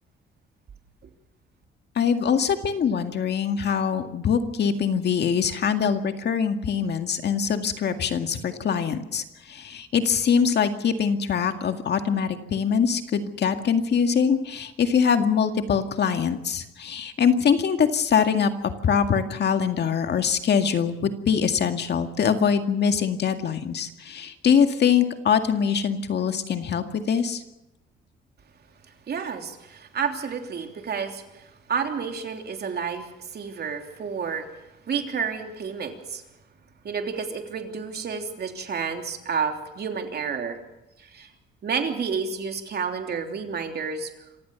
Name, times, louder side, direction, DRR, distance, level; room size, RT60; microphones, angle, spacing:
voice 1, 2.0-27.4, left 7 dB, 60° left, 6 dB, 2.0 m, -23 dB
voice 2, 29.1-34.4 34.9-36.2 36.8-40.6 41.1-41.3 41.6-44.1, right 6 dB, 55° right, 4 dB, 3.3 m, -30 dB
27.0 x 15.5 x 7.0 m, 0.94 s
cardioid pair, 90°, 20 cm